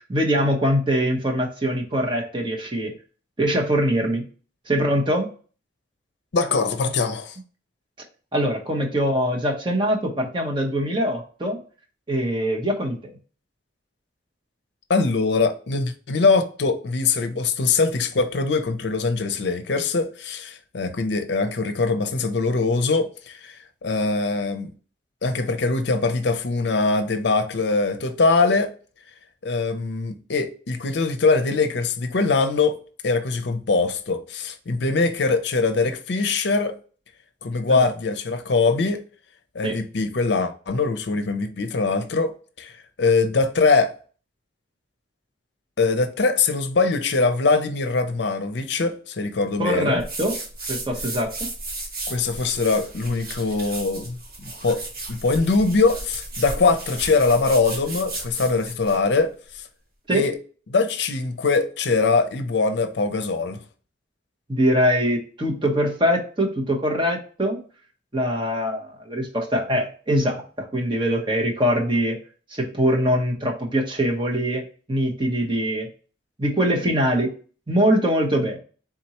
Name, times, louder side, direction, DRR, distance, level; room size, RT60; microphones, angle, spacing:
voice 1, 0.1-2.9 3.4-4.2 4.7-5.3 8.3-11.6 12.1-13.0 37.8-37.9 39.6-39.8 49.6-50.4 50.7-51.3 60.1-60.3 64.5-67.6 68.1-72.2 72.5-74.6 74.9-75.9 76.4-77.3 77.7-78.6, equal, 25° right, 0.9 m, -23 dB
voice 2, 6.3-7.4 14.9-24.7 25.2-28.7 29.4-32.8 33.0-36.7 37.4-39.0 39.5-42.3 42.6-42.7 43.0-43.9 45.8-50.0 52.1-54.2 54.6-54.8 55.1-59.6 60.1-60.4 60.7-63.6, left 4 dB, 65° left, 0.6 m, -22 dB
sound 1, 50.0-59.0, right 2 dB, 50° right, 1.8 m, -34 dB
4.3 x 3.7 x 2.9 m
head